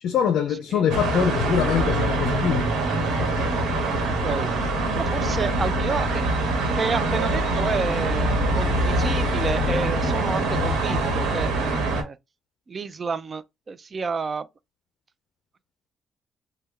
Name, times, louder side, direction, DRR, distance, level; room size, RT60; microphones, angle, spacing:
voice 1, 0.0-2.7 3.2-3.5, left 8 dB, 75° left, 0.4 m, -24 dB
sound 1, 0.9-12.0, right 2 dB, 90° right, 1.1 m, -24 dB
voice 2, 4.9-6.2 6.7-12.2 12.7-14.5, right 5 dB, 40° right, 0.4 m, -30 dB
3.3 x 2.2 x 3.2 m
cardioid pair, 90°, 0 cm